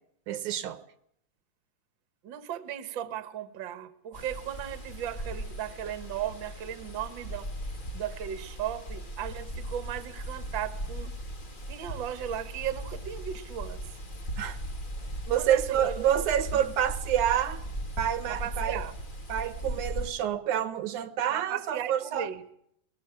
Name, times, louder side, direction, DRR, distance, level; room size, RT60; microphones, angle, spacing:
voice 1, 0.3-0.8 14.4-14.6 15.3-17.6 18.0-18.8 19.3-22.3, right 10 dB, 75° right, 2.4 m, -28 dB
voice 2, 2.2-7.5 7.9-11.1 11.7-13.8 15.3-16.1 16.5-16.7 18.3-19.0 21.3-22.4, right 10 dB, 50° right, 1.7 m, -36 dB
sound 1, 4.1-20.1, right 1 dB, 35° left, 0.7 m, -38 dB
21.0 x 19.5 x 9.0 m
omnidirectional pair, 3.7 m